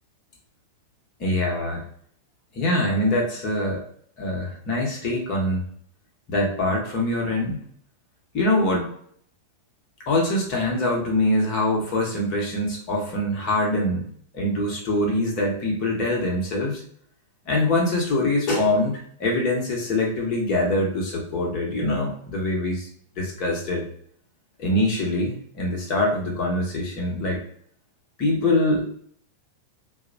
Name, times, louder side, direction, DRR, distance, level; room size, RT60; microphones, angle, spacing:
voice 1, 1.2-1.8 2.5-3.8 4.2-5.7 6.3-7.6 8.3-8.9 10.1-16.8 17.4-22.9 23.2-23.8 24.6-27.4 28.2-28.9, left 1 dB, 40° left, -1 dB, 0.9 m, -24 dB
2.3 x 2.0 x 2.7 m, 0.62 s
figure-of-eight pair, 90°, 0 cm